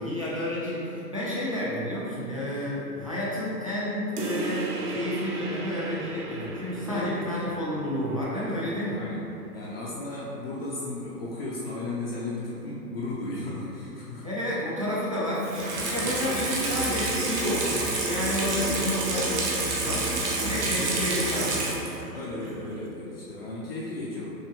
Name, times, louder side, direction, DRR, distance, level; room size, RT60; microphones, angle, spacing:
voice 1, 0.0-9.0 14.2-21.9, left 1 dB, 25° right, -8 dB, 0.3 m, -30 dB
sound 1, 4.2-9.2, right 3 dB, 70° right, 0.7 m, -36 dB
voice 2, 6.9-7.4 8.9-14.3 15.6-16.2 20.3-20.7 22.1-24.3, left 2 dB, 40° left, -7 dB, 0.6 m, -35 dB
Water tap faucet / Sink (filling or washing), 15.4-22.1 22.4-22.5, right 2 dB, 45° right, 0.9 m, -28 dB
6.1 x 2.1 x 3.5 m, 2.8 s
figure-of-eight pair, 125°, 48 cm